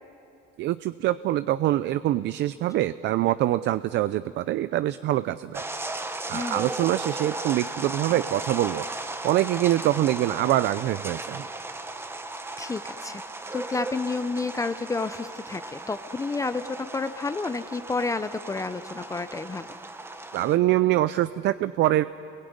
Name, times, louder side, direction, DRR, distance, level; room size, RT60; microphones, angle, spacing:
voice 1, 0.6-5.6 6.3-8.8 9.2-11.4 20.3-22.0, right 14 dB, 60° right, 14 dB, 0.6 m, -24 dB
sound 1, 5.5-20.6, right 2 dB, 10° right, 1.1 m, -36 dB
voice 2, 6.3-6.7 12.6-13.2 13.5-19.7, left 3 dB, 15° left, 11 dB, 0.6 m, -30 dB
28.0 x 22.5 x 9.6 m, 2.9 s
cardioid pair, 140°, 21 cm